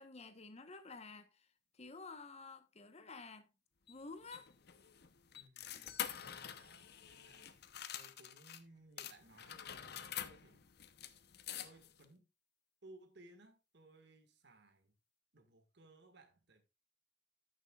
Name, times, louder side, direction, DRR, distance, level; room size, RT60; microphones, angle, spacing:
voice 1, 0.0-1.5 1.8-3.5 3.9-4.5, left 3 dB, 35° left, 1.1 m, -51 dB
sound 1, 3.9-8.6 9.0-12.0, left 10 dB, 60° left, 0.8 m, -47 dB
voice 2, 5.4-7.6 7.9-10.7 11.6-12.3 12.8-15.0 15.3-16.6, right 2 dB, 65° right, 1.8 m, -62 dB
14.0 x 6.9 x 2.4 m
head